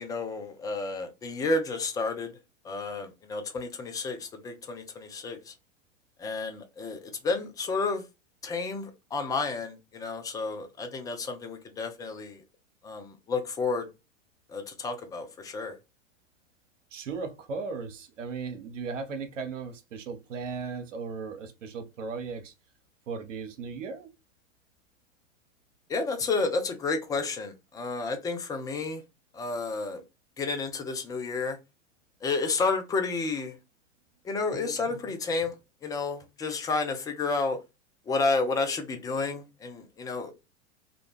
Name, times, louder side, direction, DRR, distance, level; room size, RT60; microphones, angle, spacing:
voice 1, 0.0-2.3 2.6-5.5 6.2-8.0 8.4-12.4 12.8-13.9 14.5-15.8 25.9-29.0 29.3-30.0 30.4-31.6 32.2-33.6 34.2-35.5 35.8-37.6 38.1-40.3, left 3 dB, 10° left, 0.4 m, -31 dB
voice 2, 16.9-22.5 23.1-24.1, right 5 dB, 75° right, 0.7 m, -36 dB
2.4 x 2.2 x 3.3 m
hypercardioid pair, 100°, 37 cm